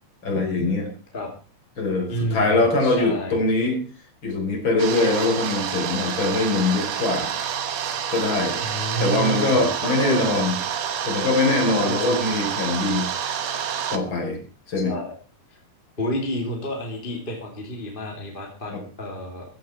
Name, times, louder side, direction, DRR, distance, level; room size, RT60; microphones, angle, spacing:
voice 1, 0.2-0.9 1.8-3.8 4.2-7.3 8.1-8.6 9.0-10.6 11.0-13.1 13.9-14.4 14.7-14.9 18.7-18.8, left 2 dB, 30° left, 2 dB, 4.6 m, -22 dB
voice 2, 2.1-3.4 8.6-10.4 11.8-12.3 14.7-15.1 15.5-15.6 16.0-19.5, equal, 15° left, 0 dB, 2.4 m, -30 dB
sound 1, 4.8-14.0, right 8 dB, 60° right, 2.1 m, -28 dB
15.5 x 13.5 x 4.4 m, 0.36 s
omnidirectional pair, 4.4 m